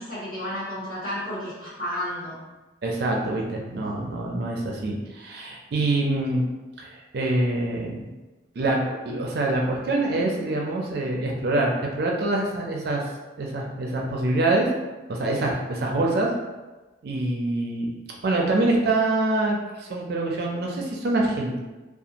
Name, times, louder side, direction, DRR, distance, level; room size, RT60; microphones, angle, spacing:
voice 1, 0.0-2.4, equal, 45° left, -12 dB, 1.5 m, -32 dB
voice 2, 2.8-6.4 6.8-8.1 8.6-8.8 9.0-13.0 13.4-14.7 15.1-16.3 17.0-17.9 18.2-21.6, right 2 dB, 55° right, -1 dB, 0.4 m, -25 dB
2.5 x 2.3 x 2.8 m, 1.2 s
head